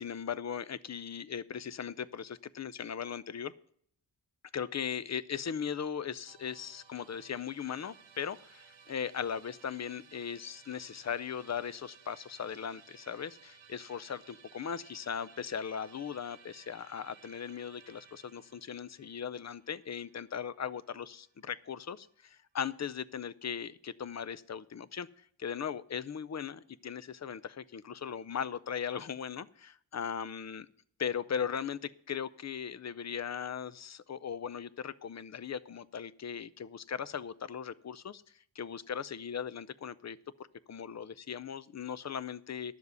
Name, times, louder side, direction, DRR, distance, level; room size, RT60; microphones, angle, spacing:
voice 1, 0.0-3.5 4.5-30.7 31.0-40.2 40.7-42.8, left 7 dB, 40° left, 17 dB, 0.5 m, -38 dB
Musical instrument, 6.3-21.4, right 7 dB, 80° right, 1.1 m, -58 dB
11.0 x 7.2 x 6.7 m, 0.64 s
wide cardioid pair, 115°, 45 cm